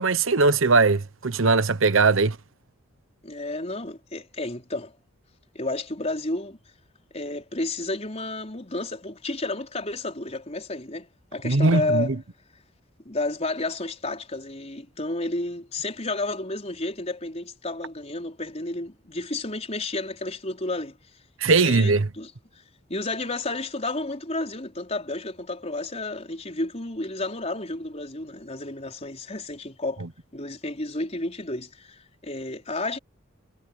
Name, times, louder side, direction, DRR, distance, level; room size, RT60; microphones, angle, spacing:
voice 1, 0.0-2.4 11.4-12.1 21.4-22.1, right 3 dB, 75° right, 1.0 m, -20 dB
voice 2, 3.2-4.9 5.5-6.6 7.1-12.1 13.0-21.0 21.5-22.3 22.9-30.0 30.3-33.0, left 2 dB, 30° left, 4.7 m, -31 dB
head